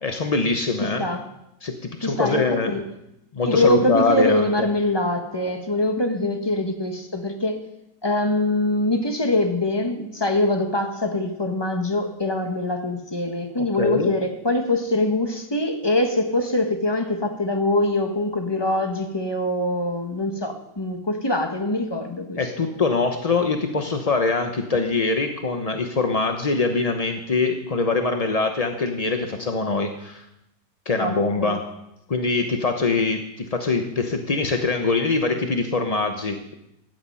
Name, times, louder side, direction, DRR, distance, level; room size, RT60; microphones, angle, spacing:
voice 1, 0.0-1.1 1.6-2.7 3.3-4.7 13.6-14.1 22.4-30.2 30.9-31.6 32.1-36.5, left 3 dB, 40° left, 5 dB, 0.5 m, -23 dB
voice 2, 0.8-1.2 2.0-2.8 3.4-7.6 8.0-22.7 31.0-31.5, left 1 dB, 15° left, 4 dB, 1.3 m, -23 dB
15.5 x 10.5 x 5.6 m, 0.83 s
omnidirectional pair, 2.0 m